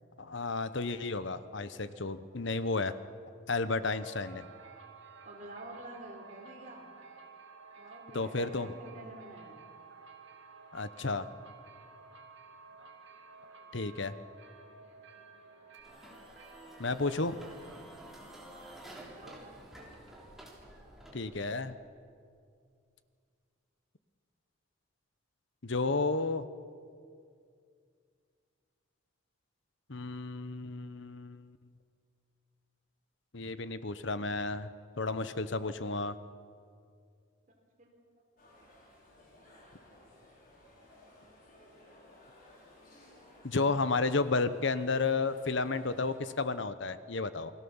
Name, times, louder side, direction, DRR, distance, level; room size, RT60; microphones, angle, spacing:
voice 1, 0.2-2.9 3.5-4.5 8.1-8.7 10.7-11.3 13.7-14.1 16.8-17.4 21.1-21.7 25.6-26.5 29.9-31.6 33.3-34.7 35.0-36.2 43.4-47.5, left 3 dB, 60° left, 13 dB, 0.9 m, -32 dB
sound 1, 3.9-20.3, right 4 dB, 60° right, 2.7 m, -54 dB
voice 2, 5.2-6.9 7.8-9.6 13.5-13.7 15.1-15.5 18.5-18.7 19.2-19.4 37.8-37.9, right 1 dB, 40° right, 0 dB, 4.6 m, -49 dB
sound 2, 15.8-21.6, right 1 dB, ahead, 3.6 m, -51 dB
sound 3, 38.4-46.2, left 1 dB, 40° left, 5.5 m, -58 dB
28.5 x 20.0 x 7.2 m, 2.3 s
head